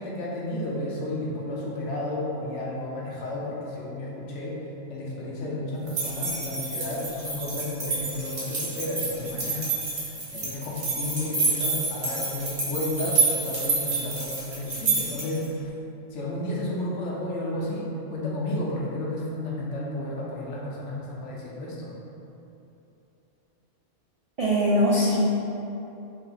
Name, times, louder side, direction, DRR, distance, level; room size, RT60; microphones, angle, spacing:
voice 1, 0.0-4.6 4.9-15.7 16.1-21.9, left 1 dB, 85° left, -4 dB, 1.1 m, -32 dB
sound 1, 5.9-15.4, right 3 dB, 85° right, 1.6 m, -28 dB
voice 2, 24.4-25.3, equal, 65° right, -8 dB, 0.3 m, -21 dB
3.4 x 2.8 x 3.9 m, 2.9 s
omnidirectional pair, 1.2 m